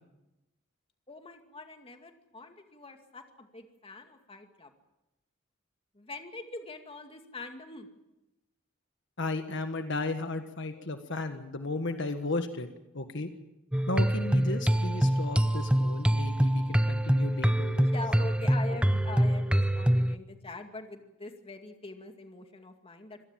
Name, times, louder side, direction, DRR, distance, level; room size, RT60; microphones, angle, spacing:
voice 1, 1.1-4.7 5.9-7.9 17.8-23.3, left 2 dB, 30° left, 5 dB, 2.4 m, -43 dB
voice 2, 9.2-12.7 12.9-13.3 13.9-17.9 18.7-18.8, left 2 dB, 65° left, 7 dB, 1.6 m, -34 dB
sound 1, 13.7-20.2, equal, 5° right, 0.7 m, -25 dB
26.5 x 18.0 x 7.5 m, 0.95 s
head